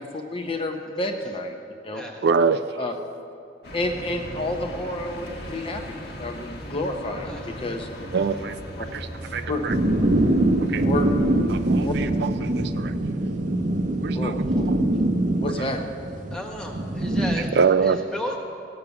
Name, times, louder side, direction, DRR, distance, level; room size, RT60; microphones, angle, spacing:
voice 1, 0.0-1.6 1.8-2.0 2.8-2.9 3.7-7.9 8.8-8.9 9.5-9.6 10.8-11.1 11.8-11.9 14.1-14.7 15.4-15.8, left 1 dB, 30° left, 4 dB, 0.8 m, -30 dB
voice 2, 2.2-2.6 8.1-8.5 8.9-9.7 10.6-10.9 11.5-13.0 14.0-14.8 17.5-18.0, right 5 dB, 60° right, 11 dB, 0.4 m, -24 dB
sound 1, 3.6-12.3, equal, 60° left, 1.3 m, -38 dB
sound 2, 9.7-17.5, right 1 dB, 45° right, 0.8 m, -23 dB
voice 3, 16.3-17.6 17.8-18.4, equal, 5° left, -1 dB, 1.4 m, -34 dB
17.0 x 6.7 x 6.9 m, 2.6 s
head